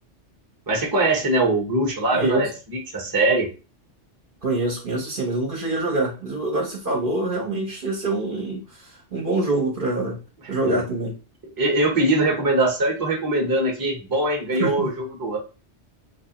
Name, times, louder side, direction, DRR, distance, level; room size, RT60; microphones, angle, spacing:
voice 1, 0.7-3.5 11.6-15.4, right 2 dB, 20° right, 0 dB, 0.8 m, -22 dB
voice 2, 2.1-2.5 4.4-10.2 10.5-11.1 14.5-14.9, right 2 dB, 50° right, 1 dB, 0.9 m, -25 dB
3.3 x 3.2 x 2.9 m, 0.33 s
omnidirectional pair, 1.2 m